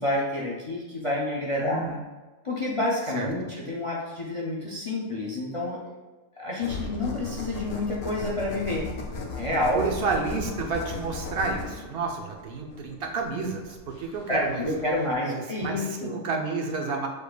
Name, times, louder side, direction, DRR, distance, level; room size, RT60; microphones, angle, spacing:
voice 1, 0.0-1.9 2.4-5.8 6.4-8.9 9.4-9.9 14.3-16.2, left 2 dB, 40° left, -3 dB, 0.5 m, -28 dB
voice 2, 1.6-2.0 3.1-3.3 9.7-14.7 15.3-17.1, right 4 dB, 55° right, 1 dB, 0.8 m, -30 dB
sound 1, 6.6-15.1, left 3 dB, 75° left, 1.1 m, -37 dB
6.7 x 3.2 x 2.3 m, 1.2 s
omnidirectional pair, 1.4 m